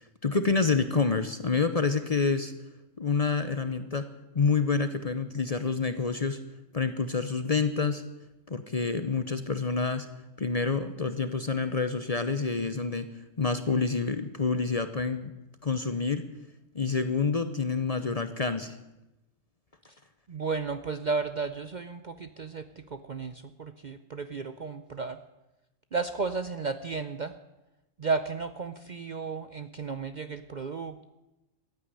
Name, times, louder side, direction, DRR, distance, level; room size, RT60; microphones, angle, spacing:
voice 1, 0.2-2.5 3.0-4.1 4.3-6.4 6.7-8.0 8.5-10.1 10.4-13.1 13.4-15.3 15.6-16.3 16.7-18.8, left 4 dB, 35° left, 10 dB, 0.7 m, -28 dB
voice 2, 20.3-22.7 22.9-25.2 25.9-27.3 28.0-31.1, right 4 dB, 45° right, 10 dB, 0.6 m, -33 dB
14.5 x 9.2 x 9.9 m, 0.98 s
omnidirectional pair, 1.4 m